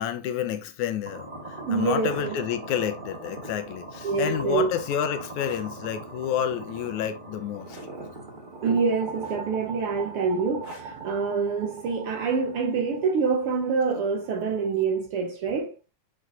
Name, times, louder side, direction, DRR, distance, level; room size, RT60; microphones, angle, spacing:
voice 1, 0.0-7.8, left 9 dB, 90° left, 2.3 m, -29 dB
sound 1, 1.0-15.1, right 2 dB, 50° right, 0.5 m, -41 dB
voice 2, 1.6-2.4 4.0-4.7 8.6-15.8, right 5 dB, 65° right, 1.5 m, -26 dB
sound 2, 5.4-5.7 7.7-7.9 9.2-9.7 10.6-11.0 12.4-12.6, left 3 dB, 30° left, 2.1 m, -48 dB
7.7 x 4.9 x 2.5 m
omnidirectional pair, 3.3 m